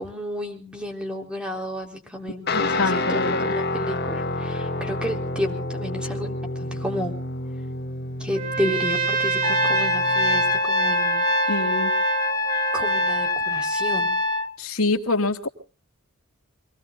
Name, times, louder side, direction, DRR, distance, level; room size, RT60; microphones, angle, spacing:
voice 1, 0.0-7.2 8.2-11.6 12.7-14.2, equal, 5° right, 2 dB, 3.7 m, -32 dB
voice 2, 2.5-3.5 11.5-11.9 14.6-15.5, left 2 dB, 85° left, 2 dB, 2.7 m, -25 dB
Guitar, 2.5-10.6, left 2 dB, 50° left, 2.0 m, -29 dB
Trumpet, 8.3-13.4, right 5 dB, 40° right, 2.4 m, -27 dB
Trumpet 2, 9.4-14.5, left 2 dB, 20° left, 1.6 m, -24 dB
27.5 x 18.5 x 2.5 m, 0.37 s
head